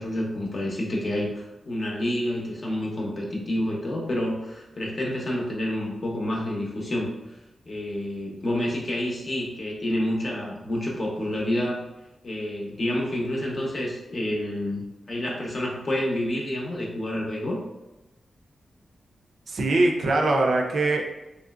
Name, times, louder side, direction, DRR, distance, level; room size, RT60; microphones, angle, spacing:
voice 1, 0.0-7.1 7.7-11.9 12.2-17.6, left 1 dB, 40° left, -2 dB, 0.7 m, -28 dB
voice 2, 19.5-21.0, right 2 dB, 65° right, 1 dB, 0.4 m, -22 dB
3.0 x 2.7 x 2.4 m, 0.98 s
wide cardioid pair, 135°, 0 cm